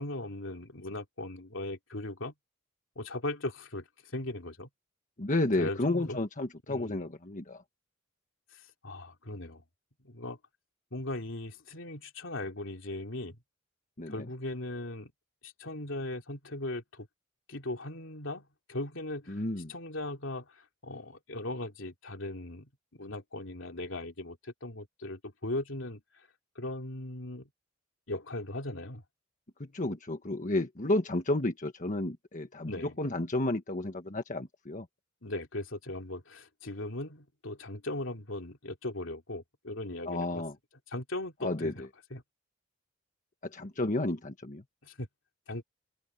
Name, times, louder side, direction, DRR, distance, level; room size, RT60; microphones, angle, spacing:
voice 1, 0.0-2.3 2.9-3.8 4.1-4.7 5.6-6.2 6.7-7.1 8.5-9.6 10.0-10.4 10.9-13.4 14.1-15.1 15.4-17.1 17.5-19.4 19.7-26.0 26.5-27.5 28.1-29.0 32.7-33.0 35.2-40.4 40.9-42.2 44.8-45.1 45.5-45.6, left 2 dB, 75° left, 3.2 m, -38 dB
voice 2, 5.2-7.6 14.0-14.3 19.3-19.7 29.7-34.8 40.1-40.5 41.4-41.7 43.5-44.6, left 2 dB, 40° left, 1.5 m, -31 dB
open air
head